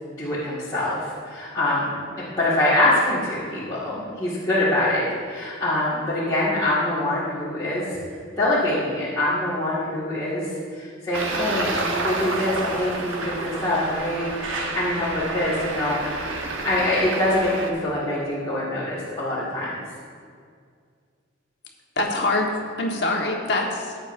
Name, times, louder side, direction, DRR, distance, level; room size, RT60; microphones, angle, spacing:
voice 1, 0.0-2.0 2.4-7.9 8.3-16.2 16.6-19.7, left 1 dB, 20° left, -12 dB, 1.9 m, -24 dB
Traffic noise roadway noise, 11.1-17.7, right 2 dB, 85° right, 1.1 m, -29 dB
voice 2, 21.9-24.0, left 2 dB, 55° left, -1 dB, 1.4 m, -24 dB
15.5 x 8.9 x 2.6 m, 2.1 s
head